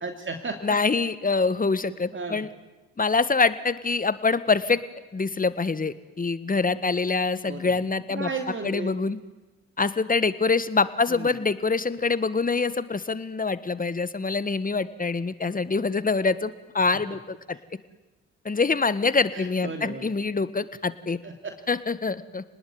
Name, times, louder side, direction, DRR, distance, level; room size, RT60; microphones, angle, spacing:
voice 1, 0.0-0.8 2.1-2.5 7.5-7.7 8.1-9.0 11.1-11.4 19.3-20.1 21.2-21.5, right 4 dB, 40° right, 5 dB, 2.9 m, -34 dB
voice 2, 0.6-2.5 3.0-4.8 5.1-8.3 8.6-9.2 9.8-17.6 18.4-21.2 21.7-22.4, left 4 dB, 25° left, 14 dB, 1.7 m, -25 dB
28.5 x 20.0 x 9.5 m, 1.1 s
hypercardioid pair, 45°, 32 cm